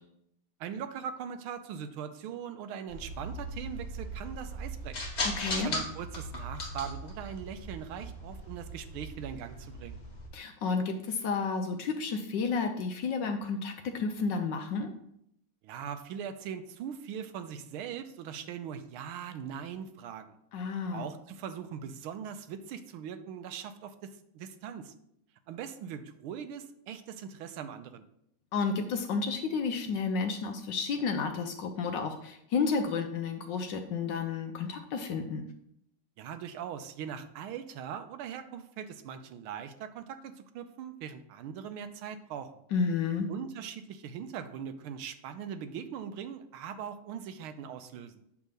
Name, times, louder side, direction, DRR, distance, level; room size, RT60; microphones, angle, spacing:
voice 1, 0.6-5.0 5.5-10.0 15.6-20.3 20.9-24.9 25.5-28.0 36.2-42.5 43.3-48.2, right 8 dB, 90° right, 9 dB, 1.5 m, -41 dB
sound 1, 2.9-10.3, left 1 dB, 35° left, 1.4 m, -38 dB
voice 2, 5.2-5.7 10.3-14.9 20.5-21.1 28.5-35.4 42.7-43.3, left 5 dB, 70° left, 6 dB, 1.2 m, -31 dB
8.3 x 3.6 x 6.5 m, 0.75 s
omnidirectional pair, 2.3 m